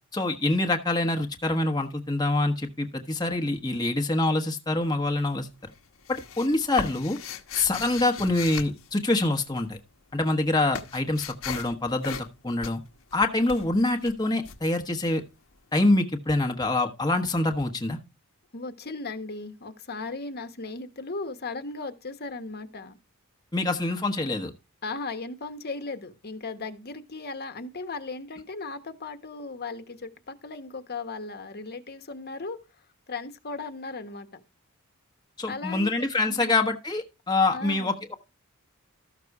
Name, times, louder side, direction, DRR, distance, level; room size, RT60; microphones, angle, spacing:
voice 1, 0.1-5.5 6.1-7.2 7.5-9.8 10.1-12.8 13.1-15.2 15.7-18.0 23.5-24.5 35.4-38.1, left 2 dB, 20° left, 1.2 m, -25 dB
sound 1, 4.8-5.3 5.6-9.7 10.0-15.5, left 6 dB, 70° left, 1.3 m, -38 dB
voice 2, 18.5-23.0 24.8-32.6 33.1-34.4 35.5-36.6 37.5-38.1, left 3 dB, 45° left, 1.3 m, -37 dB
13.5 x 6.6 x 4.8 m
head